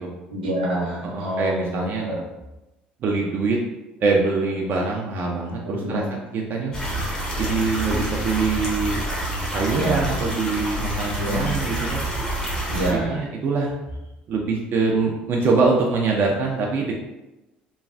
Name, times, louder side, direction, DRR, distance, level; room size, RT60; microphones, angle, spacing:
voice 1, 0.3-2.2 5.6-6.0 9.7-10.0 11.2-11.5 12.7-13.2, right 1 dB, 80° right, -4 dB, 0.8 m, -27 dB
voice 2, 1.0-2.2 3.0-3.6 4.0-6.7 7.4-9.0 9.5-12.1 12.9-13.7 14.3-16.9, right 4 dB, 45° right, -1 dB, 0.4 m, -24 dB
sound 1, 6.7-12.9, right 1 dB, 15° left, 1.0 m, -27 dB
3.1 x 2.3 x 2.4 m, 0.99 s
figure-of-eight pair, 60°, 5 cm